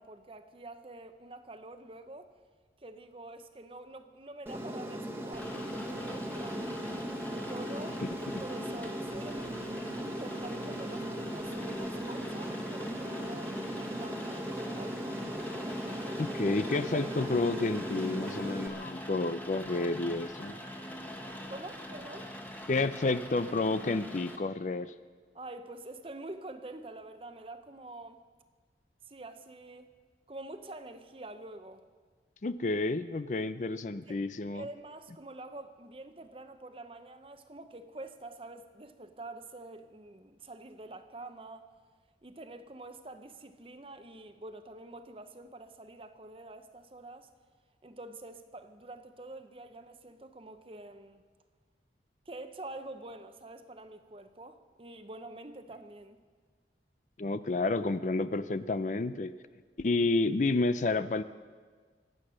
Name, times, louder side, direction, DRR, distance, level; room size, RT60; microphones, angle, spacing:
voice 1, 0.0-2.3 2.8-6.9 7.3-8.0 8.4-15.2 21.5-22.3 25.3-28.2 29.1-29.9 30.3-31.8 33.4-33.5 34.1-34.2 34.5-41.7 42.2-47.3 47.8-51.2 52.3-56.2, right 2 dB, 30° right, 9 dB, 0.8 m, -47 dB
Aircraft, 4.5-18.7, equal, 15° right, 1.3 m, -38 dB
Rain, 5.3-24.4, left 1 dB, 10° left, 1.3 m, -44 dB
voice 2, 16.2-20.6 22.7-24.9 32.4-34.6 57.2-59.3 59.8-61.2, left 3 dB, 45° left, 13 dB, 0.4 m, -30 dB
25.0 x 8.7 x 6.3 m, 1.5 s
head